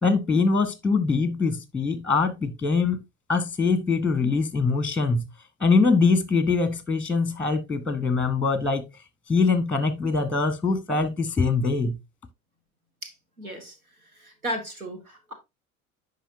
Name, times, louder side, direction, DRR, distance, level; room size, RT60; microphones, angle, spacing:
voice 1, 0.0-3.0 3.3-5.2 5.6-8.9 9.3-11.9, left 4 dB, 5° left, 0.9 m, -23 dB
voice 2, 13.0-13.7 14.2-15.3, equal, 85° right, 1.4 m, -35 dB
10.0 x 5.2 x 2.7 m
figure-of-eight pair, 70°, 42 cm